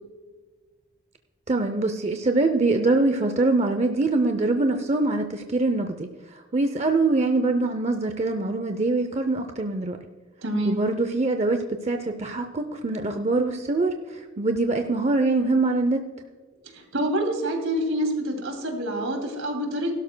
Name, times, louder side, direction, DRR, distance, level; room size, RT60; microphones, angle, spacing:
voice 1, 1.5-10.0 10.6-16.0, right 2 dB, 30° right, 7 dB, 0.5 m, -24 dB
voice 2, 10.4-10.8 16.7-19.9, right 1 dB, 70° right, 3 dB, 2.6 m, -27 dB
16.5 x 12.5 x 2.2 m, 1.4 s
head